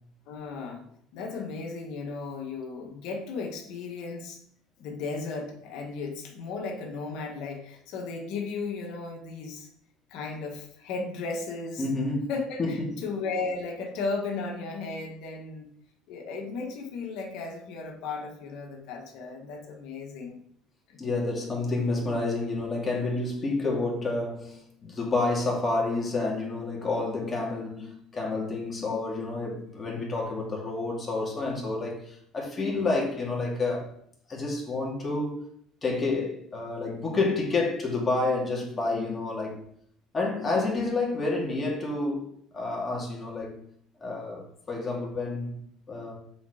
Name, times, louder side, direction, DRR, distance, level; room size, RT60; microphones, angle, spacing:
voice 1, 0.3-0.9 1.1-4.4 4.8-9.7 10.1-11.8 12.3-15.7 16.1-20.4 20.9-21.0, left 4 dB, 75° left, 1.7 m, -35 dB
voice 2, 11.8-12.3 12.6-13.0 21.0-33.9 34.3-35.5 35.8-39.6 40.1-43.5 44.0-45.6 45.9-46.1, left 3 dB, 25° left, 2.5 m, -29 dB
7.0 x 4.6 x 5.1 m
supercardioid pair, 110°, 0 cm